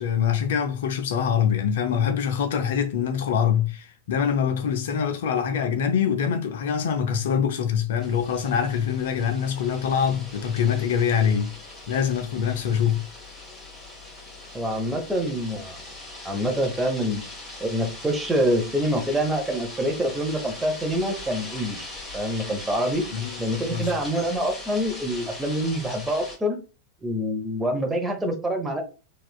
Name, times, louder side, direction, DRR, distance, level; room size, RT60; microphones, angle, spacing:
voice 1, 0.0-11.6 11.9-13.0 23.1-23.4 23.7-23.9, left 8 dB, 55° left, 0.5 m, -24 dB
sound 1, 8.0-26.4, left 2 dB, 10° left, 1.4 m, -40 dB
voice 2, 14.5-15.8 16.2-17.2 17.6-23.0 23.4-26.6 27.0-28.8, equal, 10° right, 0.8 m, -26 dB
4.2 x 2.4 x 2.3 m
figure-of-eight pair, 90°, 0 cm